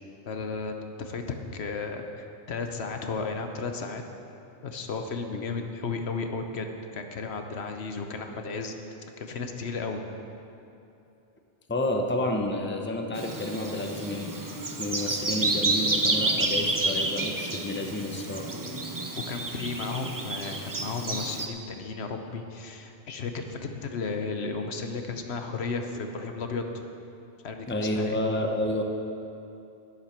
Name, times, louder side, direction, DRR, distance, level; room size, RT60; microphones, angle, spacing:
voice 1, 0.2-1.2 1.5-4.0 4.6-6.7 6.9-8.7 9.2-10.0 18.5-18.8 19.3-26.8 27.4-28.2, left 4 dB, 70° left, 5 dB, 1.1 m, -34 dB
voice 2, 11.7-14.5 14.8-18.5 27.7-28.8, left 1 dB, 10° left, 2 dB, 0.8 m, -30 dB
Bird vocalization bird call bird song, 13.2-21.5, right 2 dB, 20° right, 0.6 m, -30 dB
11.5 x 10.5 x 5.9 m, 2.7 s
omnidirectional pair, 1.1 m